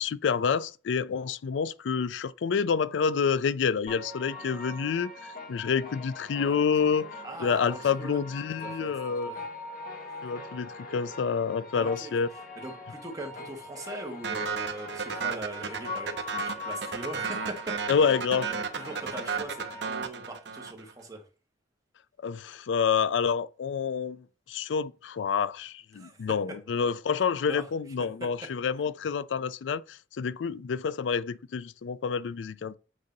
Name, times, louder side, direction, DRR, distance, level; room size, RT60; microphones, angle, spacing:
voice 1, 0.0-7.1 7.4-9.3 10.2-12.3 17.9-18.5 22.2-32.7, left 6 dB, 85° left, 0.4 m, -28 dB
sound 1, 3.9-19.9, left 2 dB, 50° left, 1.4 m, -41 dB
voice 2, 6.4-6.9 7.2-8.2 8.6-9.4 10.1-10.2 11.7-12.1 12.6-17.8 18.5-21.2 25.9-26.2 27.5-27.7, right 1 dB, 20° right, 1.3 m, -41 dB
sound 2, 14.2-20.9, right 6 dB, 70° right, 0.7 m, -34 dB
8.1 x 2.8 x 5.2 m
head